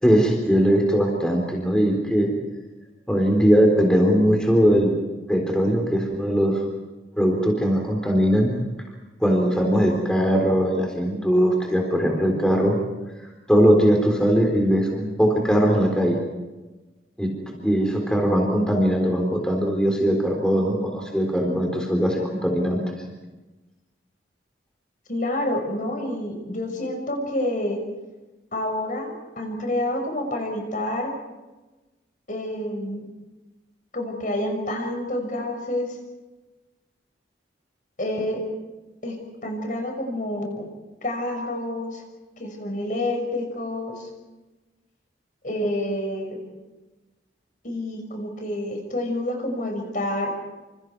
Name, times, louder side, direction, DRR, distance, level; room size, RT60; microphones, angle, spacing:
voice 1, 0.0-2.3 3.1-4.9 5.3-6.6 7.2-8.5 9.2-12.8 13.5-16.2 17.2-17.3 17.6-22.8, equal, 5° left, 1 dB, 3.9 m, -20 dB
voice 2, 25.1-27.8 28.5-31.1 32.3-33.1 33.9-36.0 38.0-38.4 39.0-40.6 41.0-42.0 42.4-44.1 45.4-46.4 47.6-50.3, left 1 dB, 45° left, 4 dB, 5.9 m, -28 dB
28.0 x 28.0 x 4.8 m, 1.1 s
head